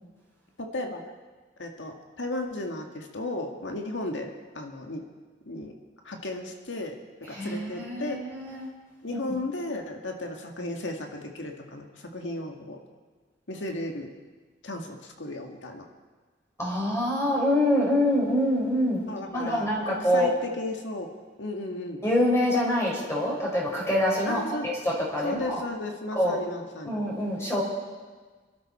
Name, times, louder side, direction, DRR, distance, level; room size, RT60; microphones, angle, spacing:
voice 1, 0.6-1.0 1.6-5.0 5.5-5.7 6.0-8.2 9.0-12.8 13.5-14.1 14.6-15.9 19.1-21.1 21.4-22.0 24.3-24.7 25.2-26.9, left 2 dB, 85° left, 3 dB, 1.8 m, -35 dB
voice 2, 7.3-8.7 16.6-19.0 19.3-20.3 22.0-25.6 26.1-26.4 26.9-27.6, left 1 dB, 15° left, -4 dB, 4.4 m, -25 dB
27.0 x 12.5 x 4.3 m, 1.4 s
head